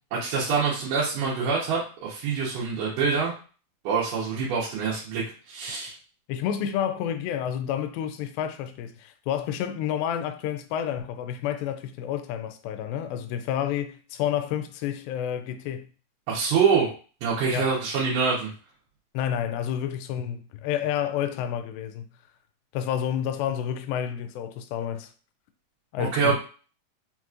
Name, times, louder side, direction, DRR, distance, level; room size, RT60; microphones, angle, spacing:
voice 1, 0.1-3.3 3.8-5.9 16.3-16.9 17.2-18.5 26.0-26.4, right 5 dB, 70° right, 2.5 m, -25 dB
voice 2, 6.3-15.9 17.5-17.7 19.1-22.1 22.7-25.1 25.9-26.4, left 9 dB, 85° left, 2.3 m, -29 dB
5.7 x 3.0 x 2.4 m
omnidirectional pair, 4.1 m